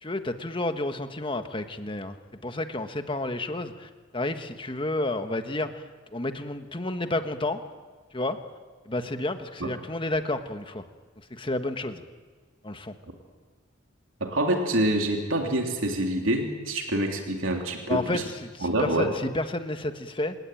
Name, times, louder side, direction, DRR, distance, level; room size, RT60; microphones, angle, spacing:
voice 1, 0.0-2.2 2.4-7.6 8.1-8.4 8.8-10.8 11.2-12.0 12.6-12.9 17.9-20.3, left 2 dB, 25° left, 8 dB, 1.5 m, -31 dB
voice 2, 14.2-18.2 18.6-19.1, right 1 dB, 85° right, 2 dB, 3.1 m, -26 dB
27.5 x 18.0 x 9.2 m, 1.5 s
head